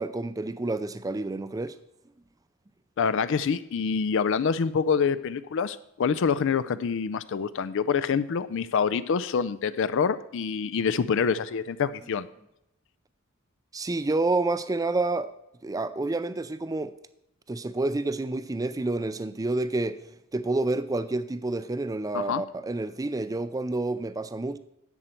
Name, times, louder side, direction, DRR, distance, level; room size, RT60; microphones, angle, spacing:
voice 1, 0.0-1.8 13.7-15.3 15.6-16.9 17.5-20.0 20.3-24.6, right 2 dB, 15° right, 0.4 m, -29 dB
voice 2, 3.0-12.3 22.1-22.4, left 6 dB, 60° left, 0.4 m, -26 dB
11.0 x 7.7 x 4.4 m
head